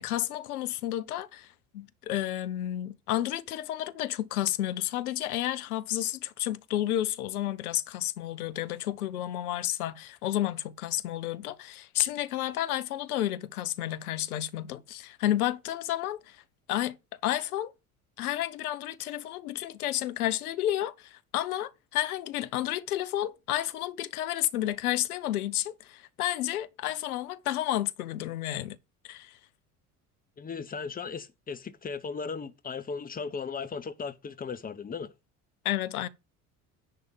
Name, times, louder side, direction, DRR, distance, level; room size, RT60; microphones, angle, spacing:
voice 1, 0.0-16.4 16.7-17.0 17.2-17.7 18.2-28.8 29.0-29.4 35.6-36.1, left 13 dB, 70° left, 0.8 m, -31 dB
voice 2, 30.4-35.1, left 5 dB, 20° left, 0.9 m, -37 dB
10.0 x 3.5 x 7.2 m
figure-of-eight pair, 60°, 45 cm